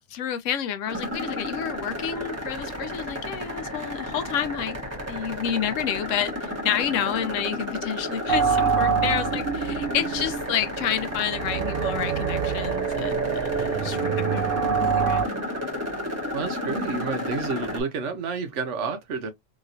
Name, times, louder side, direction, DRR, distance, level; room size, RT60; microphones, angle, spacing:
voice 1, 0.1-4.8 5.1-15.4, left 9 dB, 85° left, 1.0 m, -30 dB
sound 1, 0.9-17.8, left 1 dB, 10° right, 1.3 m, -32 dB
sound 2, 8.3-15.2, right 7 dB, 55° right, 0.7 m, -26 dB
voice 2, 16.3-19.3, right 4 dB, 70° right, 1.1 m, -30 dB
3.1 x 2.8 x 2.6 m
omnidirectional pair, 1.3 m